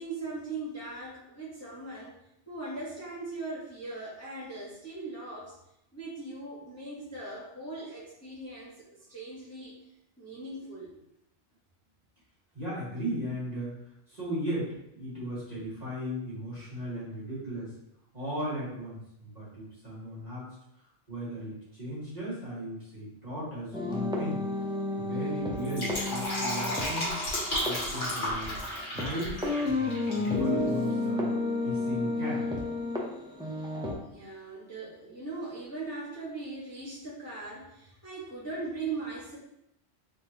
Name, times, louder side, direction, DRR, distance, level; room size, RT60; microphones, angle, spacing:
voice 1, 0.0-2.1 2.5-5.6 5.9-9.8 10.2-11.0 33.9-39.4, right 3 dB, 15° left, -11 dB, 1.2 m, -39 dB
voice 2, 12.5-13.7 14.1-17.7 18.1-24.4 25.0-27.1 27.6-28.6 28.9-31.2 31.6-32.4, equal, 35° right, -10 dB, 1.8 m, -37 dB
sound 1, 23.7-29.1 29.4-33.9, left 2 dB, 5° right, 0.3 m, -31 dB
Fill (with liquid), 25.5-30.3 30.6-30.7, left 1 dB, 45° left, 1.6 m, -33 dB
3.6 x 3.5 x 2.9 m, 0.80 s
omnidirectional pair, 1.2 m